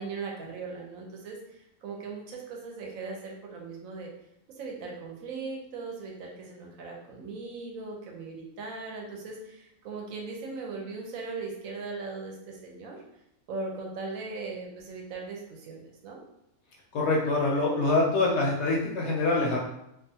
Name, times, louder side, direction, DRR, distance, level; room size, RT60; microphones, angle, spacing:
voice 1, 0.0-4.1 4.6-13.0 13.5-16.2, right 4 dB, 80° right, 0 dB, 1.0 m, -39 dB
voice 2, 16.9-19.6, left 2 dB, 65° left, -3 dB, 0.7 m, -25 dB
2.5 x 2.4 x 2.7 m, 0.81 s
omnidirectional pair, 1.4 m